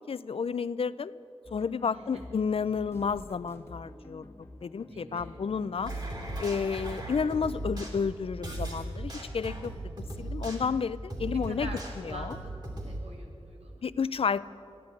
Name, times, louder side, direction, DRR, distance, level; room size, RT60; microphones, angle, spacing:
voice 1, 0.1-1.1 1.5-4.3 4.6-5.9 6.4-9.7 10.2-11.7 12.0-12.4 13.8-14.5, left 6 dB, 65° left, 17 dB, 0.4 m, -31 dB
sound 1, 1.4-7.4, left 1 dB, 25° left, 1.5 m, -49 dB
voice 2, 1.8-2.2 4.9-5.4 11.3-12.5 12.8-13.8, right 1 dB, 85° right, -1 dB, 2.5 m, -45 dB
sound 2, 5.8-13.0, right 1 dB, 45° right, 3.1 m, -37 dB
15.0 x 10.5 x 9.1 m, 2.7 s
wide cardioid pair, 85°, 10 cm